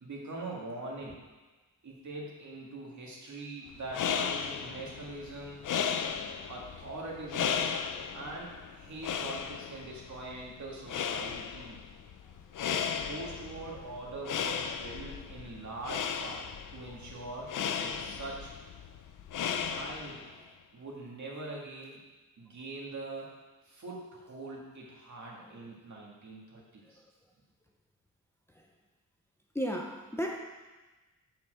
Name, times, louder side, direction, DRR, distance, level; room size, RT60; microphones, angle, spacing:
voice 1, 0.0-1.1 1.8-5.6 6.5-7.8 8.1-11.8 12.7-16.5 16.7-18.5 19.6-20.3 20.7-22.0 22.4-23.3 23.6-27.0, right 2 dB, 60° right, -3 dB, 2.3 m, -43 dB
sound 1, 3.7-20.4, left 7 dB, 70° left, 0.6 m, -36 dB
voice 2, 29.5-30.4, equal, 10° left, 0 dB, 0.8 m, -36 dB
7.1 x 5.8 x 6.4 m, 1.2 s
wide cardioid pair, 115°, 33 cm